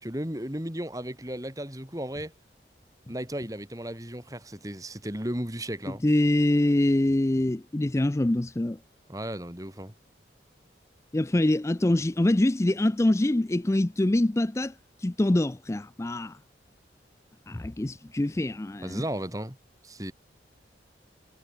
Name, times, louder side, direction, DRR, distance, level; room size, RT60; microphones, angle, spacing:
voice 1, 0.0-2.3 3.1-6.0 9.1-9.9 18.8-19.6 19.8-20.1, right 1 dB, 20° right, 3.1 m, -35 dB
voice 2, 6.0-8.8 11.1-16.4 17.5-19.0, left 1 dB, 15° left, 0.4 m, -24 dB
head